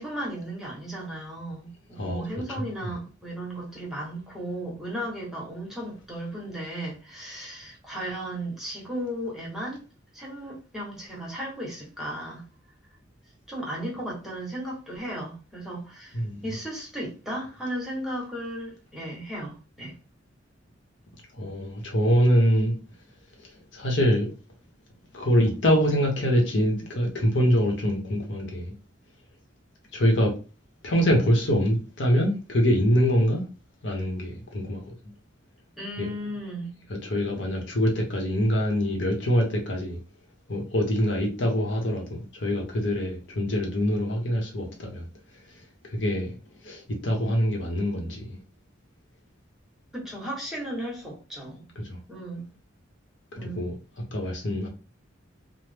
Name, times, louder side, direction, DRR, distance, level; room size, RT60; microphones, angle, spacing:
voice 1, 0.0-9.8 10.1-12.4 13.5-19.9 35.8-36.7 49.9-51.7 52.1-52.4 53.4-53.6, right 1 dB, ahead, 1.0 m, -35 dB
voice 2, 2.0-2.9 16.1-16.5 21.4-22.7 23.7-24.3 25.1-28.7 29.9-30.3 30.8-33.4 33.8-34.9 36.0-36.3 36.9-40.0 40.5-45.1 45.9-46.4 46.6-48.4 51.8-52.0 53.4-53.7 54.1-54.7, equal, 65° left, 0.9 m, -24 dB
3.1 x 2.0 x 3.3 m
head